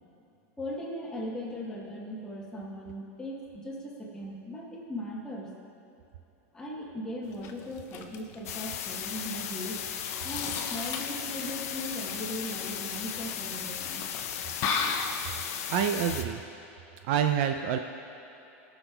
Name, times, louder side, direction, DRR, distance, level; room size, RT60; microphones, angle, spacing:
voice 1, 0.6-5.5 6.5-9.8 10.2-14.0, equal, 10° left, -3 dB, 1.1 m, -38 dB
sound 1, 7.2-15.9, left 5 dB, 35° left, 0.5 m, -37 dB
sound 2, 8.5-16.2, left 9 dB, 90° left, 0.5 m, -36 dB
voice 2, 15.7-16.4 17.0-17.8, right 8 dB, 50° right, 6 dB, 0.4 m, -27 dB
17.5 x 6.1 x 2.3 m, 2.9 s
supercardioid pair, 165°, 8 cm